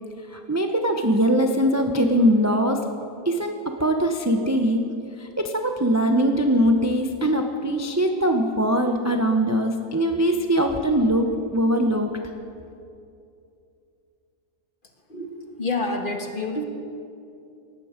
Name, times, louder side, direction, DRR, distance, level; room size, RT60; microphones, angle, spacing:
voice 1, 0.3-2.8 3.2-4.9 5.2-12.1, equal, 20° right, 4 dB, 0.4 m, -21 dB
voice 2, 15.6-16.6, left 2 dB, 35° left, 3 dB, 1.5 m, -27 dB
18.5 x 15.0 x 5.1 m, 2.6 s
omnidirectional pair, 1.7 m